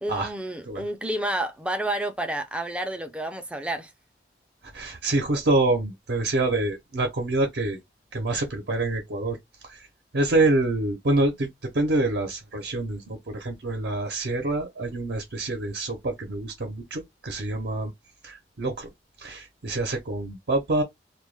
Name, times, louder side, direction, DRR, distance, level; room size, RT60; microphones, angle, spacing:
voice 1, 0.0-3.9, right 1 dB, 5° right, 0.3 m, -30 dB
voice 2, 4.7-7.8 8.1-9.4 9.6-9.9 10.1-17.9 18.2-18.9 19.2-20.8, right 2 dB, 65° right, 0.6 m, -26 dB
2.2 x 2.1 x 3.1 m
head